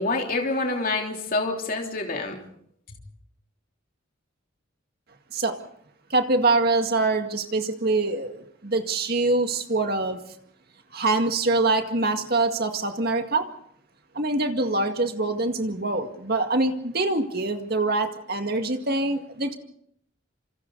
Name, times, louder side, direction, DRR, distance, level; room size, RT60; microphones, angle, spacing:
voice 1, 0.0-2.4, left 3 dB, 40° left, 2 dB, 3.2 m, -27 dB
voice 2, 6.1-10.2 10.9-13.5 14.2-19.6, right 2 dB, 45° right, 6 dB, 2.0 m, -24 dB
27.5 x 27.0 x 4.0 m, 0.66 s
head